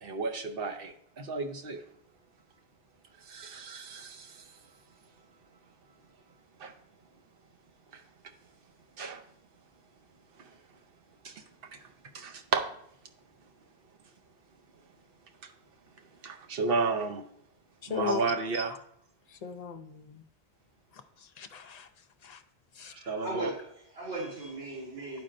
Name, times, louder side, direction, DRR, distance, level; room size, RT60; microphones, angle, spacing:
voice 1, 0.0-1.8 3.2-4.5 6.6-6.7 7.9-8.0 9.0-9.2 10.4-10.5 11.2-11.4 11.7-11.8 12.1-12.6 15.4-15.5 16.2-17.2 17.9-18.8 23.1-23.5, right 4 dB, 60° right, 5 dB, 0.9 m, -33 dB
voice 2, 17.9-18.2 19.4-20.2 21.4-21.9 22.2-22.4 22.8-22.9, left 7 dB, 55° left, 7 dB, 0.4 m, -36 dB
voice 3, 22.8-25.2, right 2 dB, 75° right, -10 dB, 2.9 m, -38 dB
11.5 x 4.3 x 2.5 m, 0.70 s
omnidirectional pair, 1.1 m